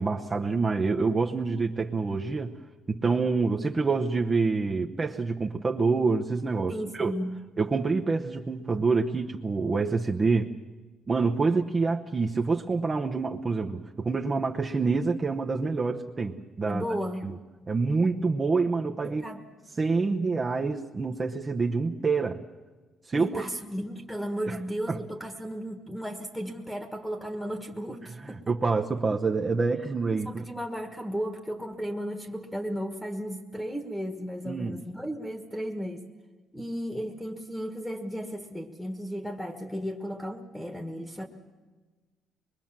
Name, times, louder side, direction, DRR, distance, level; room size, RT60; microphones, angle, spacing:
voice 1, 0.0-2.5 2.9-7.1 7.6-10.5 11.1-16.8 17.2-17.3 17.7-19.2 19.8-22.4 23.1-23.4 24.5-24.6 24.9-25.0 28.2-30.5 34.4-34.7, right 4 dB, 25° right, 2 dB, 0.9 m, -27 dB
voice 2, 6.7-7.4 16.7-17.4 19.0-19.4 23.1-28.4 30.2-36.0 36.5-41.3, equal, 5° left, 7 dB, 1.5 m, -34 dB
24.5 x 22.5 x 7.4 m, 1.3 s
cardioid pair, 140°, 0 cm